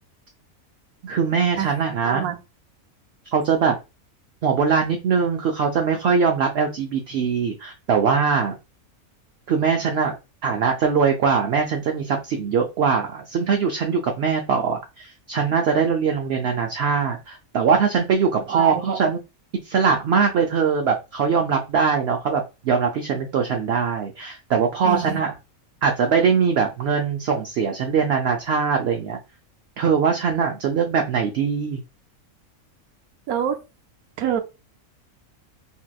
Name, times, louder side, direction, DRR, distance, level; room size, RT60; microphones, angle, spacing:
voice 1, 1.0-2.3 3.3-3.7 4.4-8.5 9.5-10.2 10.4-19.2 19.6-25.3 25.8-29.2 29.8-31.8, right 6 dB, 65° right, 0.6 m, -22 dB
voice 2, 2.0-2.4 18.5-19.0 24.8-25.2 33.3-33.6 34.2-34.4, right 8 dB, 85° right, 1.1 m, -25 dB
3.6 x 2.7 x 2.2 m
omnidirectional pair, 1.5 m